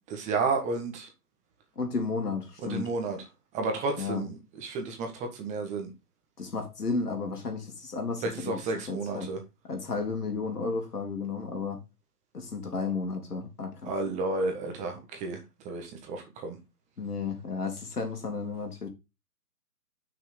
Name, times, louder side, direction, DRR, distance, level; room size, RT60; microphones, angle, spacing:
voice 1, 0.1-1.1 2.6-3.2 3.5-5.9 8.2-9.4 13.8-15.4 15.6-16.6, right 3 dB, 15° right, 1.5 m, -32 dB
voice 2, 1.8-2.9 4.0-4.2 6.4-9.3 9.6-11.8 12.3-13.9 17.0-18.9, left 4 dB, 85° left, 2.9 m, -33 dB
6.2 x 6.0 x 5.0 m
hypercardioid pair, 145°, 45 cm